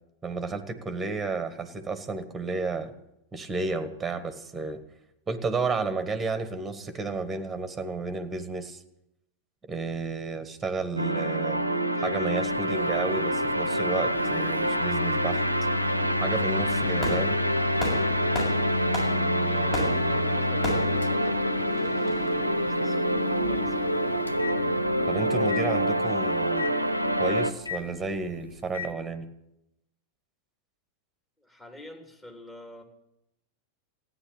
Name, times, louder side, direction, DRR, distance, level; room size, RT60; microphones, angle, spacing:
voice 1, 0.2-2.9 3.3-4.8 5.3-8.8 9.6-11.6 12.0-15.4 16.2-17.4 25.1-26.7 27.2-29.3, right 3 dB, 10° right, 11 dB, 1.7 m, -32 dB
sound 1, 11.0-27.5, equal, 85° right, 0.9 m, -27 dB
Microwave oven, 12.4-28.9, left 3 dB, 80° left, 0.7 m, -34 dB
Fireworks, 16.7-22.3, left 1 dB, 30° left, 6.4 m, -36 dB
voice 2, 19.4-21.5 21.7-23.9 31.4-32.8, left 1 dB, 15° left, 2 dB, 3.5 m, -47 dB
15.5 x 10.0 x 8.7 m, 0.82 s
figure-of-eight pair, 90°, 0 cm